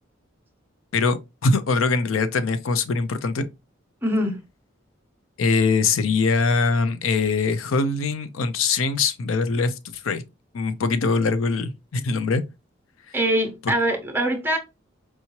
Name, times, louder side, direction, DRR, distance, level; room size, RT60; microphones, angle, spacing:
voice 1, 0.9-3.5 5.4-10.2 10.5-12.4 13.7-13.8, left 4 dB, 85° left, 0.5 m, -22 dB
voice 2, 4.0-4.4 13.1-14.6, right 1 dB, 10° right, 0.9 m, -23 dB
4.6 x 2.8 x 2.9 m
head